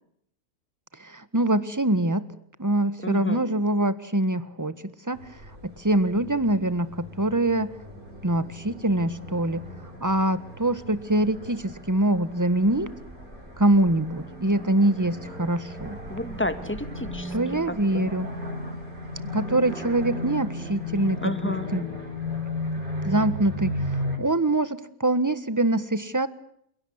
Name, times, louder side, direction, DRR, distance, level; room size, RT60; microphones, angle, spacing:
voice 1, 1.0-2.3 2.6-4.8 5.1-5.2 5.6-7.7 8.2-9.7 10.0-12.9 13.6-16.0 17.3-18.3 19.3-21.8 23.0-23.8 24.2-26.3, right 1 dB, 15° right, 14 dB, 1.4 m, -24 dB
voice 2, 3.0-3.4 16.1-17.4 17.9-18.1 21.2-21.7, left 1 dB, 10° left, 10 dB, 2.2 m, -30 dB
sound 1, 5.2-24.2, left 1 dB, 35° right, 6.0 m, -35 dB
29.5 x 17.5 x 9.7 m, 0.70 s
omnidirectional pair, 1.6 m